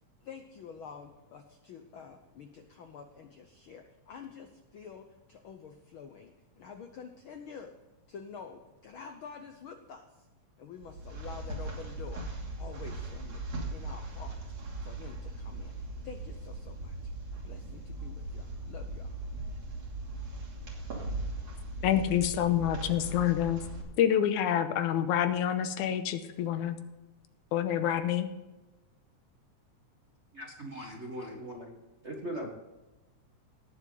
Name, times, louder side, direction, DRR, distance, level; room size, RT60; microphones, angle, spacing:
voice 1, 0.2-7.8 8.1-10.3 10.6-12.3 12.6-13.4 13.7-14.4 14.8-15.7 16.0-17.0 17.3-19.1, left 6 dB, 70° left, 5 dB, 1.2 m, -48 dB
sound 1, 10.8-23.8, right 2 dB, 60° right, 3.9 m, -39 dB
voice 2, 21.8-23.6 24.0-26.8 27.5-28.3, left 10 dB, 90° left, 9 dB, 2.4 m, -27 dB
voice 3, 30.3-31.7 32.0-32.5, equal, 35° right, -1 dB, 1.2 m, -39 dB
18.5 x 7.4 x 4.0 m, 1.1 s
omnidirectional pair, 3.4 m